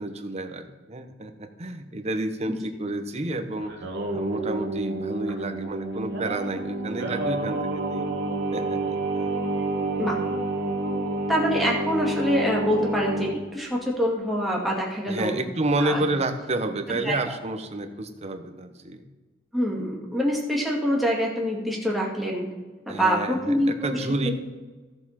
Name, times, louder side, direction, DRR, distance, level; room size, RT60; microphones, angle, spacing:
voice 1, 0.0-3.7 4.1-8.1 8.5-9.3 15.1-19.0 22.9-24.3, right 2 dB, 35° right, 7 dB, 0.8 m, -30 dB
Singing, 3.6-13.4, right 2 dB, 60° right, 1.5 m, -29 dB
voice 2, 11.3-15.3 15.8-16.0 16.9-17.3 19.5-22.5 22.9-24.3, equal, ahead, -3 dB, 2.1 m, -25 dB
14.0 x 6.8 x 4.2 m, 1.3 s
head